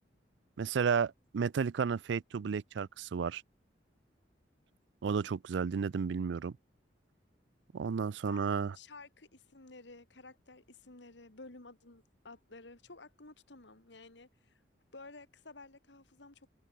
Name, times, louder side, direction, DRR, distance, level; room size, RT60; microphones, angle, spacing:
voice 1, 0.6-3.4 5.0-6.5 7.7-8.8, right 6 dB, 75° right, 0.4 m, -32 dB
voice 2, 8.2-14.6 14.9-16.5, left 3 dB, 75° left, 2.2 m, -53 dB
open air
head